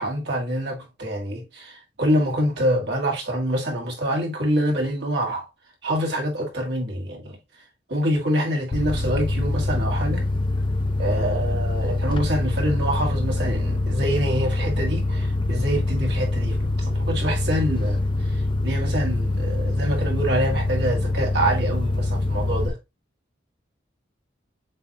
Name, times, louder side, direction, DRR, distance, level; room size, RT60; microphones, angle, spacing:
voice 1, 0.0-5.5 5.8-7.4 7.9-10.2 11.0-22.8, equal, 65° right, 1.8 m, -26 dB
sound 1, 8.7-22.7, left 2 dB, 25° left, 0.5 m, -24 dB
7.3 x 2.6 x 2.8 m
head